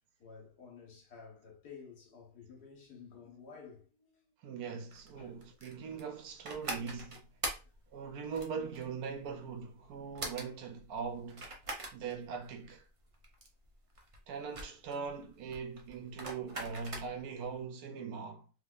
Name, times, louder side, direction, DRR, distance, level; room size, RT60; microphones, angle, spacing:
voice 1, 0.2-4.3 5.1-5.4, left 5 dB, 75° left, 1.9 m, -53 dB
voice 2, 4.4-7.3 7.9-11.5 11.9-12.8 14.3-18.5, right 6 dB, 70° right, 1.1 m, -41 dB
sound 1, 4.9-17.4, right 2 dB, 35° right, 0.5 m, -43 dB
3.5 x 3.4 x 2.4 m
omnidirectional pair, 1.7 m